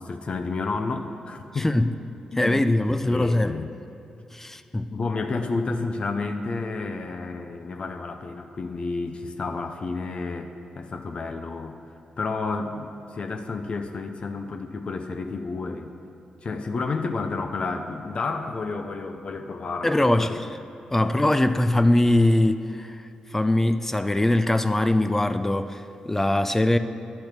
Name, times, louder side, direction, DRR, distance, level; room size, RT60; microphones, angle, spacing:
voice 1, 0.0-1.7 2.3-2.7 3.0-3.7 4.9-10.5 10.8-11.8 12.2-15.9 16.4-20.4 21.0-21.2, left 3 dB, 55° left, 6 dB, 0.6 m, -31 dB
voice 2, 1.5-1.9 2.4-3.6 4.3-4.9 19.8-20.5 20.9-26.8, left 1 dB, 15° left, 10 dB, 0.4 m, -22 dB
10.5 x 4.4 x 6.6 m, 2.6 s
supercardioid pair, 55°, 2 cm